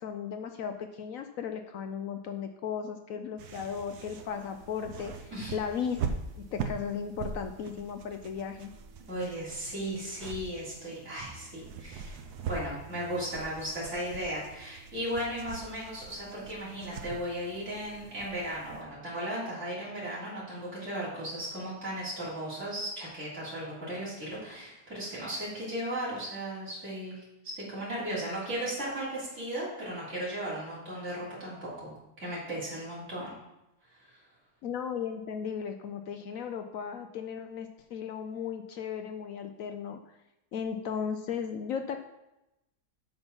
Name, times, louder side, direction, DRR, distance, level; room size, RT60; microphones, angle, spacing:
voice 1, 0.0-6.0 6.4-8.7 34.6-40.0 40.5-42.0, left 7 dB, 65° left, 7 dB, 0.9 m, -36 dB
sound 1, 3.4-18.8, right 6 dB, 70° right, 1.3 m, -42 dB
voice 2, 9.1-12.2 12.5-33.3 33.9-34.2, right 1 dB, 45° right, -8 dB, 3.9 m, -36 dB
7.9 x 5.8 x 5.4 m, 0.92 s
omnidirectional pair, 1.8 m